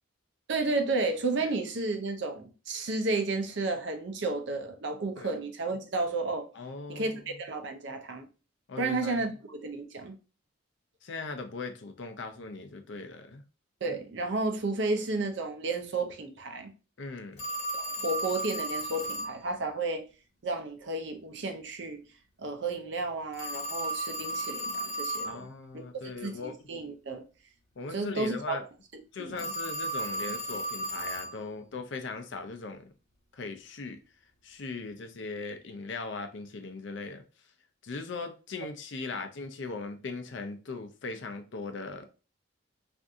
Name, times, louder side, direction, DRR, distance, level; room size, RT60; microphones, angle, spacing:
voice 1, 0.5-6.5 6.9-7.1 7.4-8.3 8.8-10.1 13.8-16.7 17.7-20.0 20.4-22.0 22.4-25.4 25.7-25.8 26.2-27.2 27.9-28.6 29.2-29.5, right 3 dB, 65° right, 0.6 m, -32 dB
voice 2, 6.5-7.4 8.7-9.3 11.0-13.4 17.0-17.4 25.2-26.7 27.8-28.6 29.1-32.9 33.3-34.0 34.4-37.2 37.8-42.1, left 3 dB, 65° left, 0.5 m, -39 dB
Telephone, 17.4-19.4 23.3-25.4 29.4-31.4, right 1 dB, 35° left, 0.9 m, -34 dB
3.5 x 2.6 x 2.6 m
head